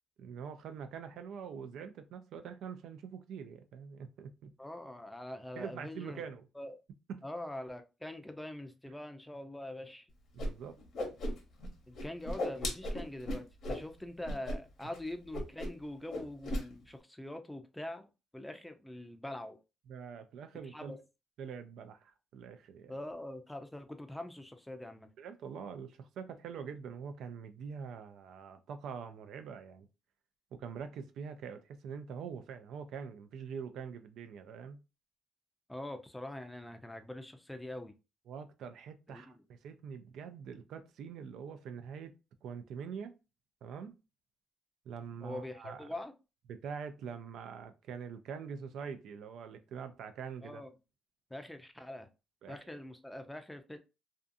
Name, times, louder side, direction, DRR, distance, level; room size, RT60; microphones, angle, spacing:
voice 1, 0.2-4.5 5.6-6.5 7.1-7.2 10.3-10.8 19.9-21.0 21.4-22.9 25.2-29.9 30.5-34.8 38.3-42.1 42.4-43.1 43.6-44.0 44.9-45.9 46.5-50.6 52.4-52.8, right 6 dB, 75° right, 0.4 m, -44 dB
voice 2, 4.6-6.2 6.5-6.8 7.2-10.1 11.9-18.1 18.3-19.6 20.7-21.0 22.9-25.1 35.7-37.9 39.1-39.4 45.2-46.1 50.4-50.7 51.3-52.1 52.5-53.8, left 1 dB, 5° left, 0.5 m, -44 dB
Whoosh swoosh swish, 10.4-10.5 10.8-11.7 11.9-13.8 14.2-14.6 14.8-15.0 15.3-15.8 16.1-16.6, left 1 dB, 65° left, 0.9 m, -36 dB
2.5 x 2.3 x 2.5 m
cardioid pair, 90°, 0 cm